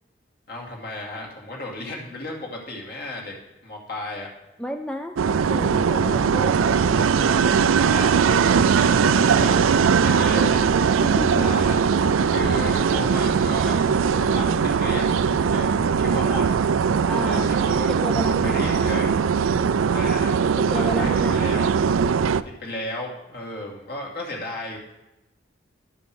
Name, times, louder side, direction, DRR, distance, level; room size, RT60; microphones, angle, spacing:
voice 1, 0.5-3.3 3.6-4.3 7.8-10.7 11.4-11.8 12.3-15.1 15.5-16.6 17.1-17.9 18.4-19.1 19.9-20.3 20.7-21.7 22.4-24.8, left 2 dB, 50° left, -2 dB, 2.5 m, -34 dB
voice 2, 4.6-7.0 9.4-9.5 11.0-11.6 17.1-17.6 17.9-18.8 20.6-21.7, equal, 5° left, 4 dB, 0.4 m, -32 dB
sound 1, 5.2-22.4, right 6 dB, 85° right, 0.4 m, -20 dB
sound 2, 5.9-13.2, left 2 dB, 30° left, 0.9 m, -37 dB
sound 3, 12.2-19.7, left 3 dB, 75° left, 0.7 m, -42 dB
11.5 x 5.7 x 6.2 m, 0.98 s
head